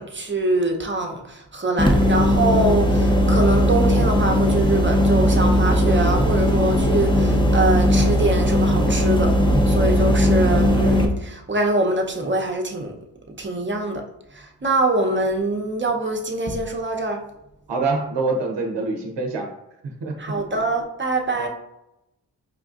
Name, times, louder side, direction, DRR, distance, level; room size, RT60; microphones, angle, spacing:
voice 1, 0.0-9.4 9.7-12.9 13.4-14.0 14.3-17.2 20.2-21.5, right 2 dB, 25° right, 2 dB, 0.7 m, -24 dB
sound 1, 1.8-11.1, equal, 10° left, 0.6 m, -18 dB
voice 2, 17.7-19.5 19.8-20.4 21.3-21.5, right 3 dB, 90° right, 2 dB, 0.7 m, -26 dB
5.0 x 2.5 x 2.4 m, 0.87 s
cardioid pair, 45°, 42 cm